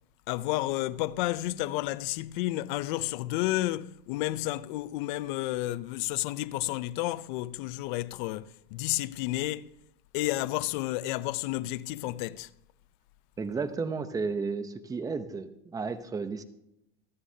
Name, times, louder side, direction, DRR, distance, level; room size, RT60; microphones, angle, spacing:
voice 1, 0.3-9.7 10.1-12.5, left 17 dB, 55° left, 0.6 m, -31 dB
voice 2, 13.4-16.4, right 4 dB, 10° right, 0.7 m, -33 dB
27.5 x 9.7 x 2.8 m
supercardioid pair, 155°, 31 cm